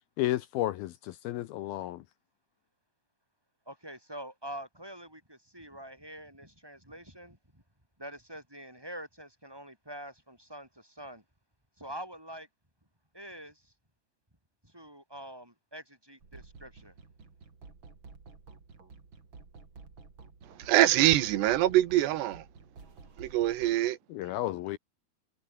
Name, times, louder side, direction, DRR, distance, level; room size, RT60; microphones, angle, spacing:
voice 1, 0.2-2.0 24.1-24.8, left 15 dB, 75° left, 2.5 m, -32 dB
voice 2, 3.7-7.6 8.0-11.2 11.8-12.5 13.1-13.7 14.6-16.9, right 1 dB, 5° right, 7.0 m, -45 dB
sound 1, 16.2-23.9, right 4 dB, 30° right, 4.0 m, -52 dB
voice 3, 20.6-22.4 23.2-24.0, right 14 dB, 85° right, 3.4 m, -24 dB
omnidirectional pair, 4.7 m